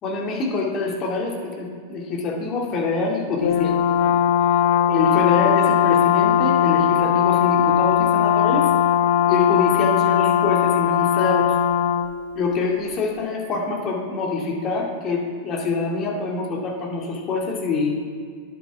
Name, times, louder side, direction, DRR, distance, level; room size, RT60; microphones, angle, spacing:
voice 1, 0.0-3.8 4.9-8.7 9.3-11.5 12.3-17.9, left 3 dB, 30° left, -1 dB, 2.2 m, -25 dB
Brass instrument, 3.4-12.1, left 9 dB, 55° left, 0.3 m, -19 dB
10.0 x 7.8 x 4.6 m, 2.1 s
figure-of-eight pair, 90°, 0 cm